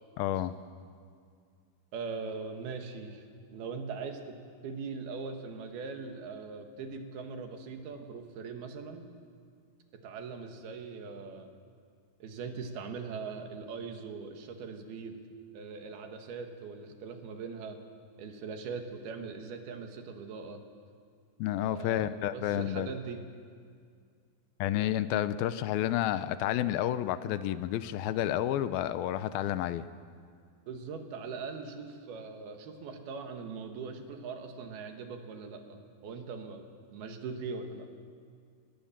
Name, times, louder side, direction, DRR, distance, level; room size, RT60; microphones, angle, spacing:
voice 1, 0.2-0.5 21.4-22.9 24.6-29.9, left 12 dB, 80° left, 13 dB, 2.6 m, -30 dB
voice 2, 1.9-3.2 3.5-4.4 4.6-9.1 9.9-11.5 12.2-15.2 15.5-17.8 18.2-20.6 21.6-23.2 30.7-36.6 36.9-37.9, right 5 dB, 90° right, 5 dB, 3.8 m, -41 dB
28.0 x 19.5 x 7.4 m, 2.2 s
omnidirectional pair, 4.3 m